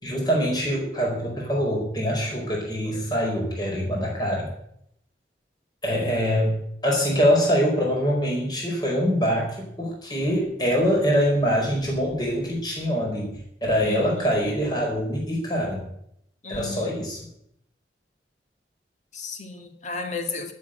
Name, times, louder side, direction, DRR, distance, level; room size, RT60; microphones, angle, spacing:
voice 1, 0.0-4.5 5.8-15.8 16.5-17.2, equal, 25° left, -2 dB, 4.7 m, -24 dB
voice 2, 13.8-14.3 16.4-17.0 19.1-20.5, left 3 dB, 45° left, 5 dB, 2.0 m, -34 dB
12.5 x 7.6 x 9.0 m, 0.73 s
head